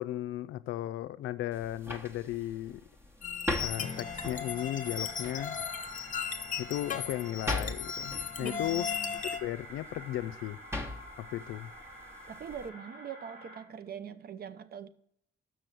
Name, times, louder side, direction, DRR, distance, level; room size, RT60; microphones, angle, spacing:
voice 1, 0.0-2.8 3.6-5.6 6.6-8.9 9.2-10.6 11.2-11.7, left 14 dB, 85° left, 0.4 m, -36 dB
sound 1, 1.5-12.7, left 2 dB, 10° right, 1.1 m, -41 dB
sound 2, 3.2-9.4, left 7 dB, 40° left, 0.8 m, -36 dB
sound 3, 3.6-13.6, equal, 65° right, 3.9 m, -49 dB
voice 2, 8.4-9.2 12.3-14.9, right 8 dB, 50° right, 0.7 m, -43 dB
6.2 x 6.2 x 6.6 m
cardioid pair, 90°, 20 cm